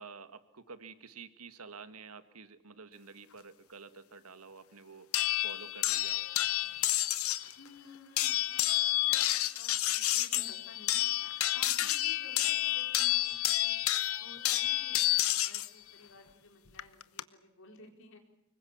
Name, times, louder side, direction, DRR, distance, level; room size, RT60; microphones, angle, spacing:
voice 1, 0.0-5.1 5.4-6.2 11.8-11.9, right 5 dB, 90° right, 11 dB, 1.8 m, -50 dB
sound 1, 5.1-7.5 8.2-15.7 16.8-17.2, left 15 dB, 75° left, 0.9 m, -30 dB
voice 2, 7.6-11.1 11.5-13.8 14.2-18.2, left 2 dB, 60° left, 5 dB, 4.5 m, -55 dB
25.0 x 22.0 x 7.4 m, 0.87 s
head